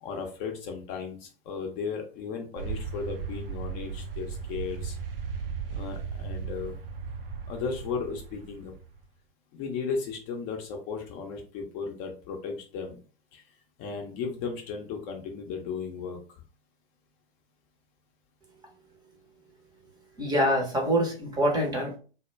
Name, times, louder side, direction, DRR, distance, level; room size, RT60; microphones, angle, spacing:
voice 1, 0.0-5.0 5.7-6.8 7.5-8.7 9.5-13.0 13.3-13.4 13.8-16.4, left 5 dB, 35° left, 2 dB, 0.6 m, -35 dB
sound 1, 2.6-9.0, right 5 dB, 70° right, 0.6 m, -36 dB
voice 2, 20.2-22.0, equal, 15° right, 1 dB, 0.7 m, -25 dB
2.1 x 2.1 x 3.1 m, 0.37 s
figure-of-eight pair, 100°, 30 cm